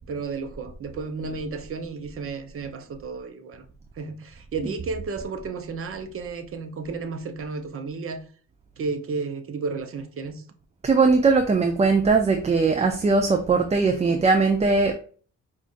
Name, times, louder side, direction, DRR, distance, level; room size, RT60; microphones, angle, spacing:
voice 1, 0.1-3.6 4.0-8.2 8.8-10.4, right 4 dB, 45° right, 0.8 m, -32 dB
voice 2, 10.8-14.9, right 4 dB, 20° right, 0.4 m, -20 dB
5.1 x 2.5 x 2.5 m
cardioid pair, 90°, 30 cm